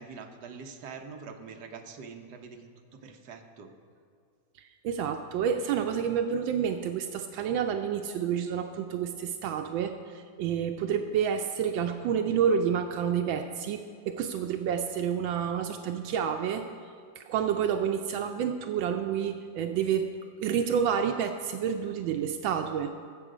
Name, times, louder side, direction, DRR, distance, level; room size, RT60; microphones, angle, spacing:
voice 1, 0.0-3.7, right 5 dB, 60° right, 3 dB, 1.5 m, -44 dB
voice 2, 4.8-16.6 17.2-20.1 20.4-22.9, right 8 dB, 85° right, 5 dB, 1.4 m, -29 dB
18.0 x 7.8 x 5.0 m, 2.2 s
omnidirectional pair, 2.1 m